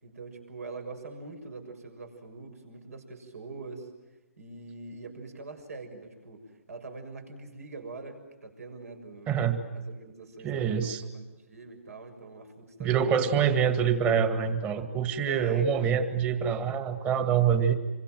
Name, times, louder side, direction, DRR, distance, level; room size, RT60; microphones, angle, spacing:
voice 1, 0.0-3.9 4.4-9.4 9.7-13.5 15.2-15.7, right 3 dB, 75° right, 5 dB, 6.7 m, -43 dB
voice 2, 9.3-9.6 10.4-11.0 12.8-17.7, right 7 dB, 20° right, 9 dB, 2.0 m, -25 dB
27.5 x 25.0 x 7.7 m, 1.2 s
hypercardioid pair, 145°, 8 cm